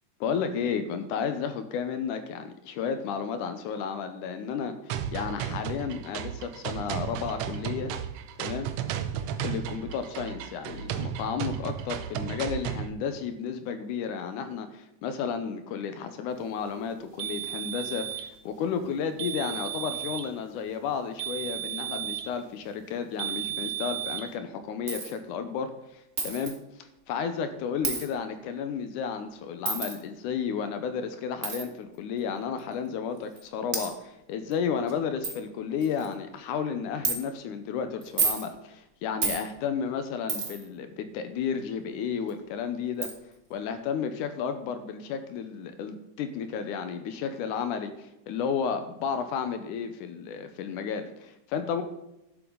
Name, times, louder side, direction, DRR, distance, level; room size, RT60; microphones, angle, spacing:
voice 1, 0.2-7.9 8.4-8.7 9.4-43.1 43.5-51.8, left 6 dB, 80° left, 9 dB, 2.2 m, -32 dB
sound 1, 4.9-12.9, right 9 dB, 85° right, 1.4 m, -34 dB
sound 2, 17.2-18.3 19.2-20.3 21.2-22.3 23.2-24.3, right 12 dB, 70° right, 1.5 m, -34 dB
Coin (dropping), 24.9-25.1 26.2-26.5 27.8-28.1 29.6-29.9 31.4-31.6 32.6-32.7 33.4-33.5 33.7-33.9 34.5-34.6 34.9-35.0 35.2-35.4 35.8-36.1 37.0-37.2 38.0-38.5 39.2-39.4 40.3-40.6 42.3-42.4 43.0-43.1, right 4 dB, 40° right, 1.2 m, -29 dB
11.5 x 7.8 x 3.8 m, 0.91 s
omnidirectional pair, 3.8 m